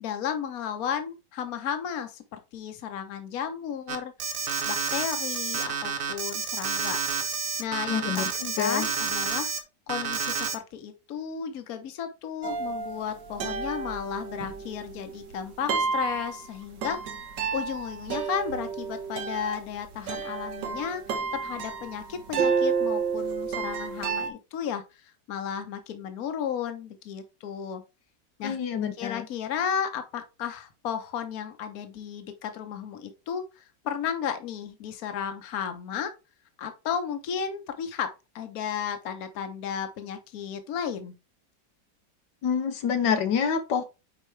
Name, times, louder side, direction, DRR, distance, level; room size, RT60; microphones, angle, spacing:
voice 1, 0.0-4.3 4.7-7.0 7.6-8.2 8.6-9.5 9.9-17.1 17.5-24.8 25.3-27.8 28.4-28.6 29.0-36.1 36.6-38.1 38.3-41.1, left 8 dB, 60° left, 1.3 m, -33 dB
Alarm, 3.9-9.6 9.9-10.6, right 5 dB, 55° right, 1.3 m, -30 dB
voice 2, 7.9-8.9 28.4-29.3 42.4-43.8, left 7 dB, 85° left, 1.6 m, -27 dB
sound 1, 12.4-24.3, right 5 dB, 80° right, 1.8 m, -31 dB
9.2 x 4.3 x 3.2 m
omnidirectional pair, 1.9 m